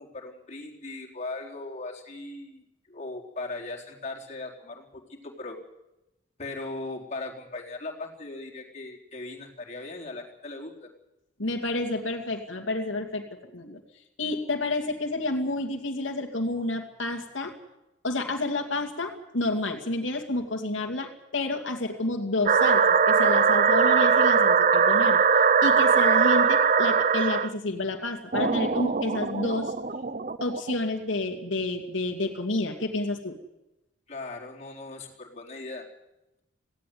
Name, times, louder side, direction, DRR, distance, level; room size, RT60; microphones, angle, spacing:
voice 1, 0.0-5.6 6.4-10.9 34.1-35.8, left 2 dB, 35° left, -1 dB, 4.1 m, -38 dB
voice 2, 11.4-13.2 13.5-13.8 14.2-17.5 18.0-29.7 30.4-33.4, left 2 dB, 85° left, 3 dB, 2.6 m, -30 dB
sound 1, 22.5-27.5 28.3-30.8, right 6 dB, 40° right, 0.7 m, -21 dB
18.0 x 16.5 x 9.5 m, 0.92 s
head